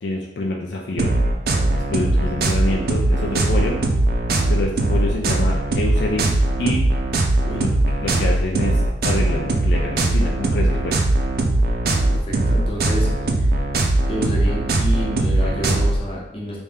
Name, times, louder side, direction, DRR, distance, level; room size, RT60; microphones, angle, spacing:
voice 1, 0.0-1.1 1.9-3.8 4.5-6.3 6.6-6.8 7.5-7.7 8.0-11.0, left 2 dB, 70° left, -1 dB, 0.5 m, -26 dB
sound 1, 1.0-16.0, right 2 dB, 60° right, 0.5 m, -20 dB
voice 2, 12.1-13.1 13.3-13.4 14.1-16.6, equal, 35° left, -3 dB, 0.9 m, -29 dB
3.4 x 2.7 x 3.5 m, 0.85 s
head